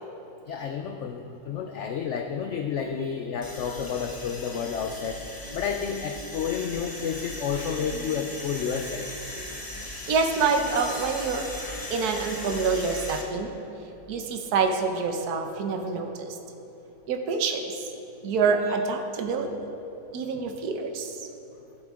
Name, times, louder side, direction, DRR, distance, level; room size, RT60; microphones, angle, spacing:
voice 1, 0.5-5.2 5.5-9.1, left 7 dB, 65° left, 4 dB, 0.7 m, -30 dB
sound 1, 3.4-13.2, left 1 dB, 20° left, 0.7 m, -38 dB
sound 2, 9.9-11.6, right 2 dB, 35° right, 1.6 m, -47 dB
voice 2, 10.1-11.4 11.9-13.5 14.1-16.3 17.1-17.8 18.2-19.5 20.1-21.2, right 4 dB, 75° right, 4 dB, 1.4 m, -26 dB
15.5 x 7.9 x 3.7 m, 2.9 s
omnidirectional pair, 1.7 m